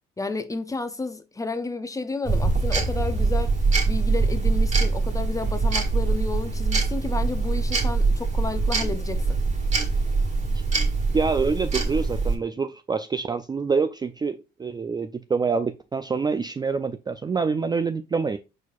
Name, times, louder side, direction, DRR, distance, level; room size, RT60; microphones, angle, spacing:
voice 1, 0.2-3.5 3.9-9.4, left 3 dB, 15° left, 0.6 m, -31 dB
sound 1, 2.2-12.3, right 3 dB, 35° right, 1.6 m, -23 dB
voice 2, 11.1-18.4, right 5 dB, 20° right, 0.3 m, -26 dB
4.5 x 4.2 x 2.3 m
cardioid pair, 90°, 20 cm